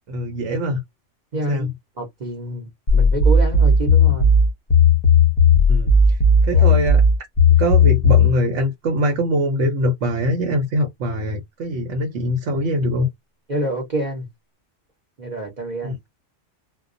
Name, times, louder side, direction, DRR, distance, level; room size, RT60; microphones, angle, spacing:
voice 1, 0.1-0.8 1.5-1.7 5.7-7.0 7.5-13.1 15.8-15.9, equal, 75° right, 1.0 m, -23 dB
voice 2, 1.3-1.7 2.0-4.3 6.5-6.7 13.5-14.2 15.2-16.0, right 1 dB, 40° right, 0.9 m, -27 dB
sound 1, 2.9-8.3, left 3 dB, 45° left, 0.7 m, -14 dB
2.3 x 2.2 x 2.5 m
omnidirectional pair, 1.3 m